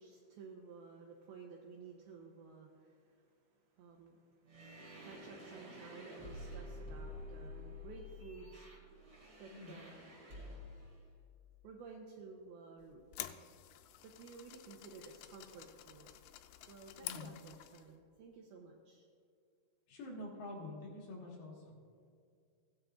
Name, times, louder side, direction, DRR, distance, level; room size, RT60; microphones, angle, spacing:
voice 1, 0.0-8.7 9.4-10.1 11.6-13.0 14.0-16.2 16.7-19.1, right 4 dB, 85° right, -1 dB, 2.2 m, -54 dB
sound 1, 4.4-10.9, left 1 dB, 40° right, 1.9 m, -50 dB
sound 2, 12.8-17.9, left 13 dB, 90° left, 2.3 m, -50 dB
voice 2, 19.9-21.8, left 2 dB, 65° left, -3 dB, 3.3 m, -47 dB
17.0 x 9.3 x 2.4 m, 2.3 s
omnidirectional pair, 5.3 m